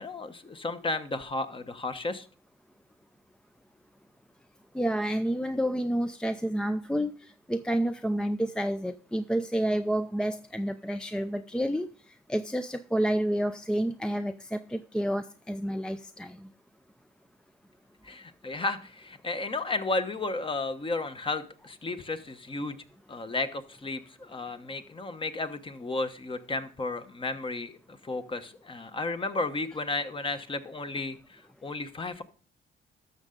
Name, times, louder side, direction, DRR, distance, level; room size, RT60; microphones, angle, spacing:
voice 1, 0.0-2.3 18.0-22.8 23.1-32.2, left 2 dB, 25° left, 1.0 m, -33 dB
voice 2, 4.7-11.9 12.3-16.5, right 1 dB, 5° left, 0.4 m, -29 dB
12.5 x 6.5 x 3.8 m
cardioid pair, 90°, 20 cm